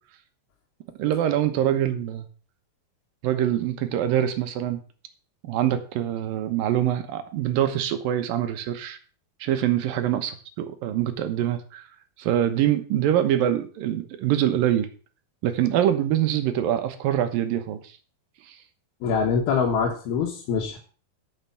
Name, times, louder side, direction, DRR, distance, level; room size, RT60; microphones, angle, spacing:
voice 1, 1.0-2.3 3.2-4.8 5.5-9.0 9.4-11.9 12.2-14.9 15.4-17.8, right 11 dB, 75° right, 9 dB, 2.7 m, -24 dB
voice 2, 19.0-20.8, left 5 dB, 85° left, -1 dB, 3.5 m, -24 dB
8.9 x 7.4 x 7.1 m, 0.39 s
omnidirectional pair, 4.4 m